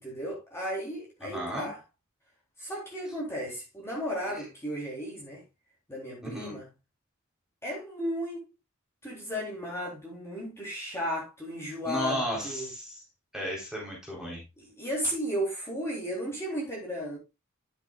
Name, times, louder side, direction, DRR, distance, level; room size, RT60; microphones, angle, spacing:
voice 1, 0.0-1.8 2.6-5.4 5.9-6.7 7.6-8.5 9.0-12.7 14.6-17.2, equal, 15° left, 3.8 m, -34 dB
voice 2, 1.2-1.7 6.2-6.5 11.9-13.0 13.3-14.4, equal, 5° right, 3.9 m, -34 dB
11.0 x 7.5 x 2.4 m
head